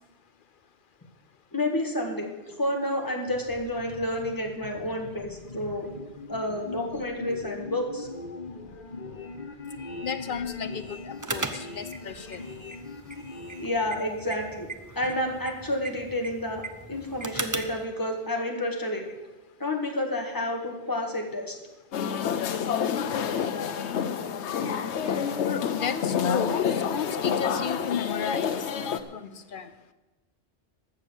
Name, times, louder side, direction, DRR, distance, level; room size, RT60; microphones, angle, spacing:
voice 1, 1.5-5.9 6.3-8.1 13.6-14.7 14.9-16.6 16.9-19.1 19.6-21.6, left 1 dB, 20° left, 2 dB, 1.7 m, -30 dB
sound 1, 3.3-13.7, left 3 dB, 40° left, 1.3 m, -40 dB
voice 2, 10.0-12.4 25.4-29.7, left 7 dB, 55° left, 12 dB, 0.7 m, -33 dB
sound 2, 11.2-17.8, right 3 dB, 20° right, 0.7 m, -38 dB
sound 3, 21.9-29.0, left 7 dB, 80° left, 1.0 m, -28 dB
14.0 x 6.9 x 7.2 m, 1.1 s
omnidirectional pair, 1.1 m